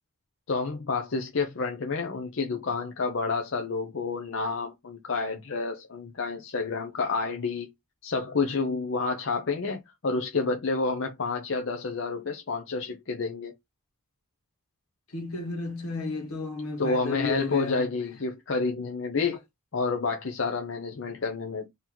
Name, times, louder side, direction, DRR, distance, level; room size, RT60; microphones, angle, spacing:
voice 1, 0.5-7.7 8.0-13.5 16.8-19.4 19.7-21.7, left 4 dB, 60° left, 0.6 m, -29 dB
voice 2, 15.1-17.8, left 4 dB, 80° left, 1.5 m, -32 dB
3.8 x 2.9 x 3.0 m
head